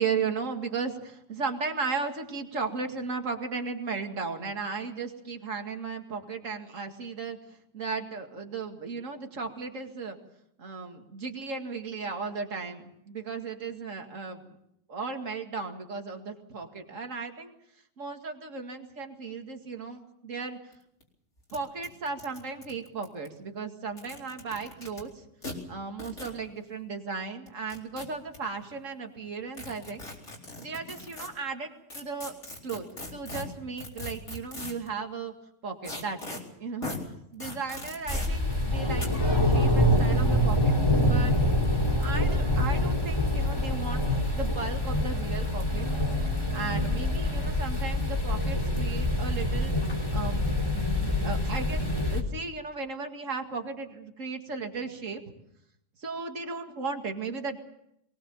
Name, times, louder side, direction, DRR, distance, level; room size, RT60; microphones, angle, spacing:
voice 1, 0.0-7.4 7.7-10.2 10.6-14.6 14.9-17.5 18.0-20.6 21.5-25.2 25.7-30.0 30.6-32.3 32.6-32.9 33.1-35.3 35.6-36.9 37.3-40.7 41.0-41.3 42.0-44.0 44.3-45.9 46.5-49.7 50.1-55.2 56.0-57.6, right 4 dB, 50° right, 4 dB, 2.5 m, -35 dB
sound 1, 20.7-20.8 21.0-21.1 21.5-21.6 21.8-23.3 23.9-25.0 25.4-25.5 26.0-26.3 27.5-28.4 29.5-31.3 31.9-34.9 35.8-36.4 36.8-37.0 37.4-38.3 39.0-39.1, left 2 dB, 45° left, 4.7 m, -39 dB
sound 2, 38.1-52.2, left 1 dB, 15° left, 3.8 m, -26 dB
sound 3, 40.9-47.5, right 3 dB, 70° right, 3.5 m, -45 dB
23.0 x 20.0 x 7.2 m, 0.76 s
omnidirectional pair, 1.7 m